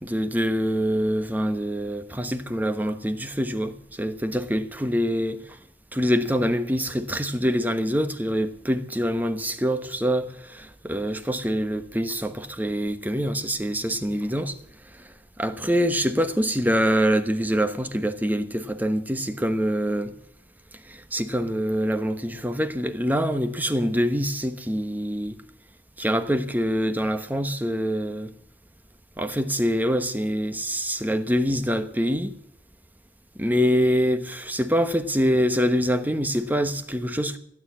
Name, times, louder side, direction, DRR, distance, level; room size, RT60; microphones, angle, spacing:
voice 1, 0.0-5.6 5.9-14.5 14.9-20.1 20.9-25.4 26.0-28.3 29.2-32.3 33.3-37.4, equal, 10° right, 1.1 m, -25 dB
15.5 x 9.3 x 9.8 m
head